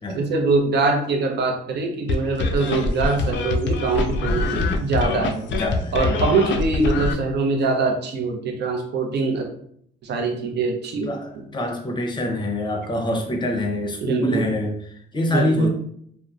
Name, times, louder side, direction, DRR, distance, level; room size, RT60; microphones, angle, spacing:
voice 1, 0.1-5.5 5.9-9.4 10.0-11.1 11.4-11.5 14.0-14.5 15.3-15.7, right 3 dB, 60° right, 3 dB, 0.6 m, -23 dB
sound 1, 2.1-7.1, left 3 dB, 65° left, 0.4 m, -24 dB
voice 2, 5.5-5.9 11.0-15.7, left 1 dB, 25° left, 2 dB, 0.6 m, -25 dB
2.9 x 2.0 x 2.4 m, 0.67 s
cardioid pair, 90°, 20 cm